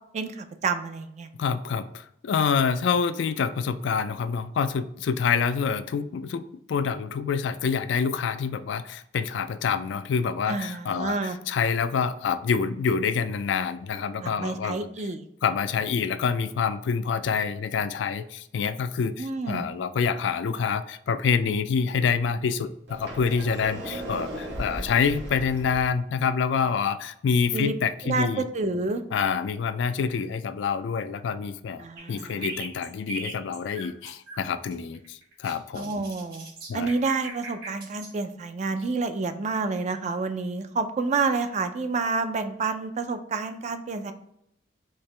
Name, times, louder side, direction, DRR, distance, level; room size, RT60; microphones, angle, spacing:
voice 1, 0.1-1.3 10.5-11.4 14.2-15.3 19.2-19.7 27.5-27.7 28.0-29.0 31.8-32.4 35.8-36.5 36.7-44.1, right 4 dB, 40° right, 9 dB, 0.4 m, -29 dB
voice 2, 1.4-14.9 15.4-28.5 29.1-36.0 36.7-36.9, left 6 dB, 75° left, 12 dB, 0.3 m, -27 dB
Sliding door, 22.9-25.9, right 1 dB, 90° right, 1.3 m, -36 dB
sound 1, 32.0-34.4 34.7-38.1, right 2 dB, 60° right, 1.5 m, -39 dB
4.5 x 2.9 x 3.3 m, 0.74 s
head